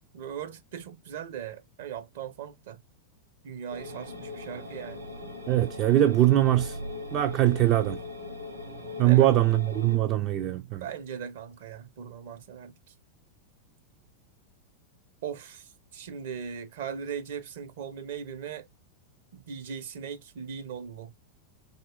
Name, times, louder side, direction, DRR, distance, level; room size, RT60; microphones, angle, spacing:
voice 1, 0.1-2.8 3.4-5.1 9.0-9.3 10.8-12.9 15.2-18.7 19.3-21.1, right 7 dB, 55° right, 0.7 m, -39 dB
sound 1, 3.7-10.0, left 2 dB, 80° right, 3.0 m, -40 dB
voice 2, 5.5-6.8 7.1-8.0 9.0-10.8, right 14 dB, 35° right, 0.4 m, -22 dB
4.3 x 2.8 x 2.2 m
figure-of-eight pair, 90°, 0 cm